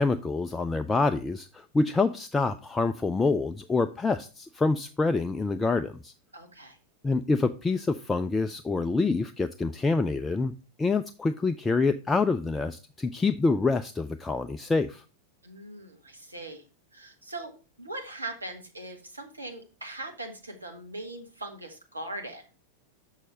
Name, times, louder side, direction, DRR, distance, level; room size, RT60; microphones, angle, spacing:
voice 1, 0.0-6.1 7.0-15.0, left 3 dB, 10° left, 0.4 m, -26 dB
voice 2, 6.3-6.8 15.4-16.6 16.9-17.5 17.8-22.6, right 2 dB, 80° right, 1.4 m, -40 dB
6.4 x 6.4 x 3.9 m
figure-of-eight pair, 90°, 0 cm